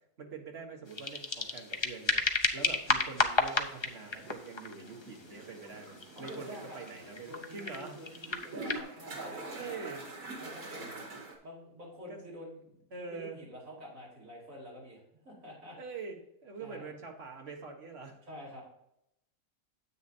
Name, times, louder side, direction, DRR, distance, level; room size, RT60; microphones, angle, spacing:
voice 1, 0.2-2.2 2.5-8.0 9.1-9.2 9.6-10.0 12.1-12.2 12.9-13.4 15.8-18.2, right 4 dB, 45° right, 1 dB, 1.8 m, -44 dB
sound 1, 0.9-8.8, left 3 dB, 30° left, 0.5 m, -34 dB
sound 2, 3.8-11.4, right 2 dB, 80° right, 2.5 m, -45 dB
voice 2, 6.1-6.8 7.2-9.8 10.4-11.0 11.4-15.8 16.6-16.9 18.2-18.6, equal, 60° right, -5 dB, 3.9 m, -48 dB
9.7 x 8.4 x 2.8 m, 0.78 s
omnidirectional pair, 1.6 m